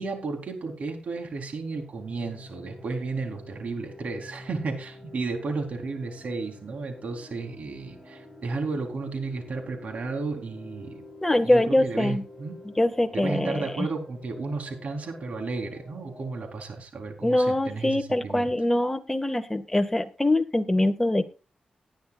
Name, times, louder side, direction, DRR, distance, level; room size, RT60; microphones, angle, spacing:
voice 1, 0.0-11.0 11.4-12.6 13.1-18.5, right 3 dB, 65° right, 3 dB, 3.7 m, -33 dB
sound 1, 1.5-16.4, left 1 dB, 15° right, 5.8 m, -48 dB
voice 2, 11.2-12.2 12.8-13.9 17.2-21.3, left 1 dB, 10° left, 8 dB, 1.7 m, -23 dB
19.0 x 10.5 x 2.5 m, 0.31 s
cardioid pair, 80°, 3 cm